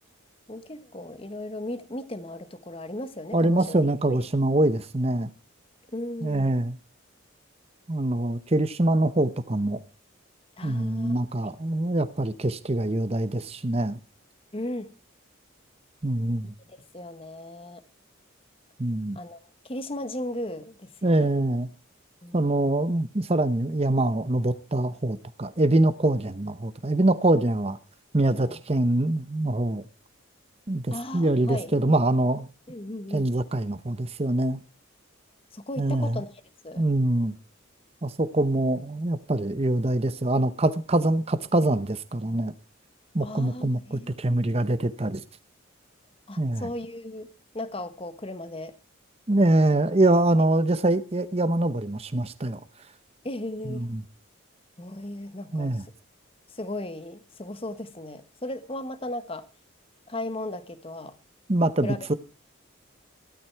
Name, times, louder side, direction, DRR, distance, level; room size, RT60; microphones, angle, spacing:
voice 1, 0.5-3.8 4.1-4.2 5.9-6.5 10.6-11.1 14.5-14.9 16.7-17.8 19.1-21.3 22.2-22.7 28.4-28.6 30.9-31.9 32.7-33.3 35.5-36.3 36.6-36.8 43.2-44.6 46.3-48.7 53.2-53.9 54.8-55.8 56.5-59.5 60.1-61.2 61.8-62.1, left 1 dB, 25° left, 1.1 m, -36 dB
voice 2, 3.3-5.3 6.2-6.8 7.9-9.8 10.6-14.0 16.0-16.5 18.8-19.2 21.0-21.7 22.3-27.8 28.1-29.8 30.7-32.5 33.1-34.6 35.8-36.2 36.8-37.3 38.0-42.5 43.1-45.2 46.4-46.7 49.3-52.6 53.7-54.0 55.5-55.8 61.5-62.1, right 1 dB, 30° right, 0.8 m, -24 dB
14.0 x 12.5 x 4.6 m
head